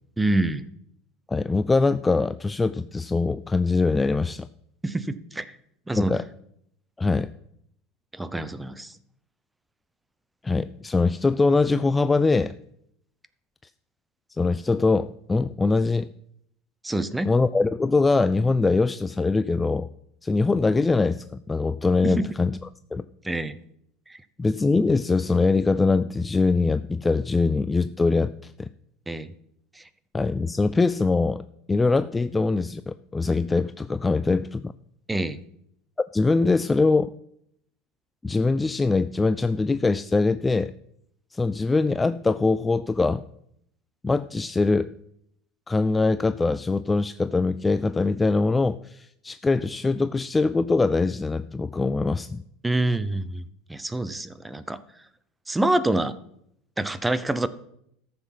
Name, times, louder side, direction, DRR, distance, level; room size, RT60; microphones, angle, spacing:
voice 1, 0.2-0.7 4.8-5.5 5.9-6.1 8.1-8.9 16.8-17.3 22.0-22.3 23.2-23.5 29.1-29.3 35.1-35.4 52.6-53.4 53.7-54.8 55.5-56.2 56.8-57.5, right 2 dB, 10° right, 15 dB, 0.7 m, -26 dB
voice 2, 1.3-4.5 5.9-6.2 7.0-7.3 10.4-12.5 14.4-16.1 17.2-19.9 20.2-22.6 22.9-23.0 24.4-28.7 30.1-34.7 36.1-37.1 38.2-40.7 41.3-43.2 44.0-44.9 45.7-52.4, left 3 dB, 15° left, 13 dB, 0.3 m, -23 dB
14.0 x 7.1 x 5.8 m, 0.74 s
supercardioid pair, 130°, 0 cm